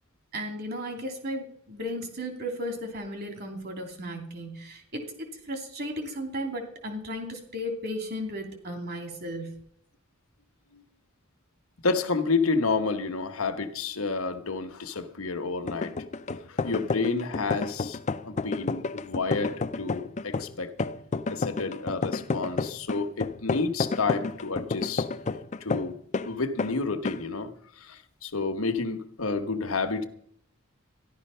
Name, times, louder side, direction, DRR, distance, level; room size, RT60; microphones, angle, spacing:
voice 1, 0.3-9.6, equal, 50° right, 4 dB, 2.8 m, -35 dB
voice 2, 11.8-15.9 16.5-20.7 21.3-25.1 25.6-26.0 26.2-27.5 27.8-30.0, left 4 dB, 90° left, 9 dB, 1.3 m, -30 dB
sound 1, 15.6-26.3 26.6-26.8 27.1-27.3, left 4 dB, 35° left, 0.5 m, -30 dB
14.0 x 11.5 x 5.6 m, 0.66 s
head